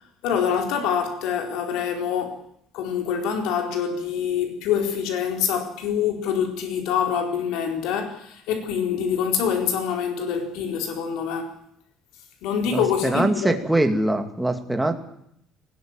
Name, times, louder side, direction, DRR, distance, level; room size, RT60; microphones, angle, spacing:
voice 1, 0.2-2.4 2.7-11.5 12.4-13.6, left 7 dB, 85° left, 4.3 m, -25 dB
voice 2, 12.7-14.9, right 1 dB, 5° right, 2.4 m, -23 dB
20.0 x 20.0 x 9.0 m
cardioid pair, 155°, 0 cm